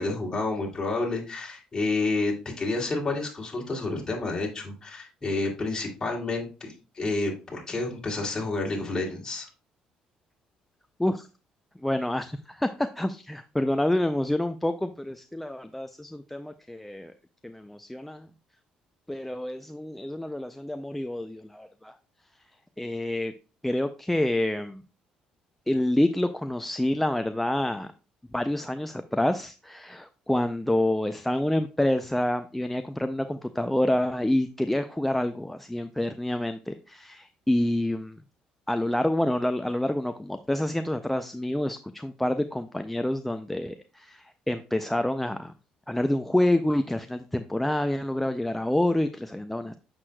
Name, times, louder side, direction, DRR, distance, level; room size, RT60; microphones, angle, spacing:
voice 1, 0.0-9.5, left 3 dB, 25° left, -1 dB, 2.6 m, -29 dB
voice 2, 11.8-17.1 17.4-18.3 19.1-21.9 22.8-23.3 23.6-24.8 25.7-27.9 28.3-38.2 38.7-45.5 45.9-49.7, left 1 dB, 5° left, 8 dB, 0.4 m, -27 dB
7.5 x 6.2 x 2.2 m, 0.33 s
cardioid pair, 100°, 3 cm